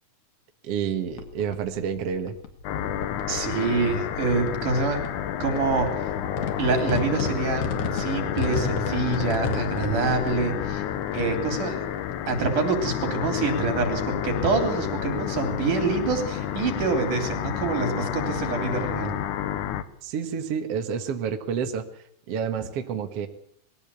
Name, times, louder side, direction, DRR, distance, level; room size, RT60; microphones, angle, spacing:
voice 1, 0.6-2.4 20.0-23.3, right 7 dB, 55° right, 6 dB, 2.3 m, -29 dB
sound 1, 1.1-19.2, left 4 dB, 50° left, 3.1 m, -37 dB
sound 2, 2.6-19.8, left 10 dB, 80° left, 2.6 m, -30 dB
voice 2, 3.3-5.0 5.4-6.0 6.6-10.8 11.1-11.9 12.3-19.1, right 4 dB, 85° right, 5 dB, 5.0 m, -26 dB
21.0 x 15.5 x 8.4 m, 0.68 s
omnidirectional pair, 3.5 m